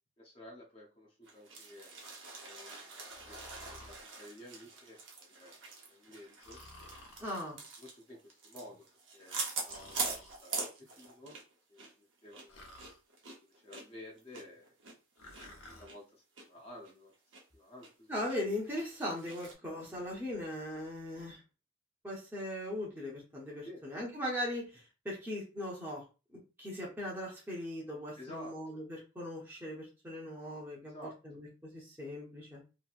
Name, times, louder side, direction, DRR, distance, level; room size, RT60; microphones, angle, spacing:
voice 1, 0.2-1.9 2.4-3.0 3.3-6.6 7.8-8.9 9.1-10.5 10.9-11.4 11.7-12.8 13.4-14.7 15.5-17.1 17.5-18.1 19.6-19.8 23.6-23.8 28.2-28.8 30.8-31.2, left 1 dB, 25° left, -3 dB, 0.6 m, -52 dB
sound 1, 1.2-11.5 11.8-11.9 12.3-15.5 15.9-16.0 16.4-16.5 16.8-17.4 17.8-17.9 18.3-19.5, right 4 dB, 65° right, 0.7 m, -43 dB
Breathing, 3.1-4.0 6.4-7.3 9.6-10.4 12.5-13.0 15.2-15.9, left 1 dB, 85° left, 0.8 m, -53 dB
voice 2, 7.2-7.6 18.1-21.4 22.0-26.0 26.3-32.6, left 1 dB, 10° right, -4 dB, 0.7 m, -39 dB
2.9 x 2.7 x 2.4 m, 0.32 s
head